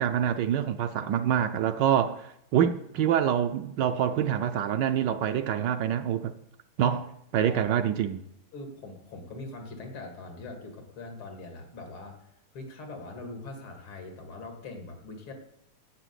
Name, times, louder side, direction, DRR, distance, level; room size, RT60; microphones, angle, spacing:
voice 1, 0.0-6.3 6.8-7.0 7.3-8.2, right 9 dB, 70° right, 9 dB, 1.1 m, -26 dB
voice 2, 8.5-12.3 12.5-15.3, left 2 dB, 90° left, 3 dB, 2.8 m, -42 dB
8.9 x 7.6 x 8.1 m, 0.77 s
omnidirectional pair, 2.3 m